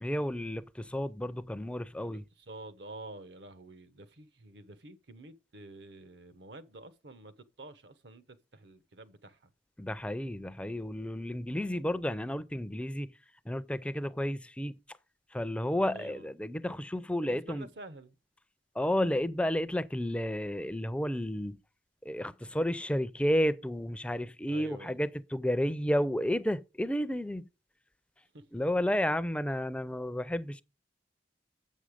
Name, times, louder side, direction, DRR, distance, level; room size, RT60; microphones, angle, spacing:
voice 1, 0.0-2.2 9.8-13.1 13.5-14.7 15.3-17.7 18.8-21.6 22.0-27.5 28.5-30.6, equal, 5° left, 0.4 m, -31 dB
voice 2, 2.0-9.5 15.9-16.3 17.2-18.1 24.5-25.0 28.3-28.5, right 2 dB, 70° right, 0.9 m, -49 dB
8.0 x 6.3 x 5.0 m
head